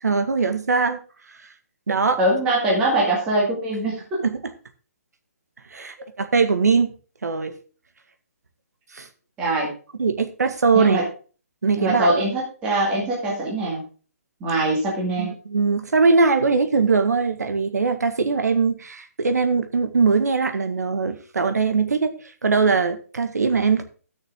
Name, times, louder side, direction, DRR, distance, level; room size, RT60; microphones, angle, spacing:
voice 1, 0.0-1.0 1.9-2.2 4.2-4.5 5.7-6.9 7.2-7.6 8.9-9.1 10.0-11.0 11.6-12.1 15.2-23.8, right 4 dB, 90° right, 8 dB, 1.7 m, -21 dB
voice 2, 2.2-3.9 9.4-9.7 10.7-11.0 11.8-13.8 14.4-15.3, right 1 dB, 10° right, -4 dB, 2.1 m, -22 dB
14.0 x 6.4 x 3.7 m, 0.38 s
hypercardioid pair, 175°, 9 cm